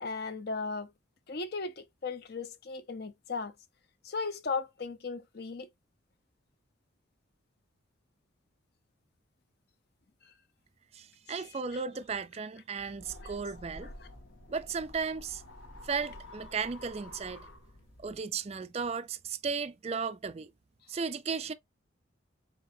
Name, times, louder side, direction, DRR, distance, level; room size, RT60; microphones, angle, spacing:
voice 1, 0.0-0.9 1.3-3.5 4.0-5.7 13.2-13.3 13.8-13.9, left 4 dB, 50° left, 0.6 m, -36 dB
voice 2, 10.9-13.9 14.5-15.4 15.8-17.5 18.0-20.5 20.9-21.5, right 5 dB, 30° right, 0.4 m, -35 dB
sound 1, 12.8-18.2, left 1 dB, 80° left, 1.6 m, -49 dB
4.6 x 4.1 x 2.6 m
head